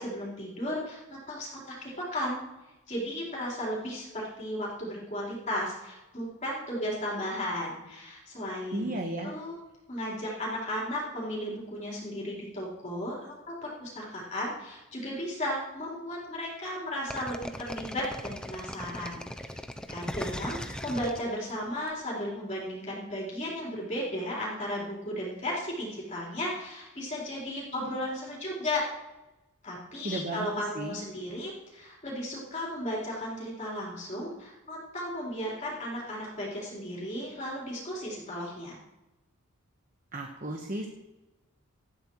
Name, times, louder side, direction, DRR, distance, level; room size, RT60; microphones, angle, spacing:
voice 1, 0.0-2.4 2.9-8.9 9.2-9.6 9.9-19.5 19.9-28.8 29.6-38.8, equal, 30° left, -5 dB, 3.8 m, -35 dB
voice 2, 8.7-9.4 30.0-30.5 30.7-31.0 40.1-40.9, right 1 dB, 35° right, 2 dB, 1.2 m, -34 dB
sound 1, 17.1-21.9, left 1 dB, 5° left, 0.5 m, -39 dB
18.5 x 13.0 x 3.1 m, 0.99 s
head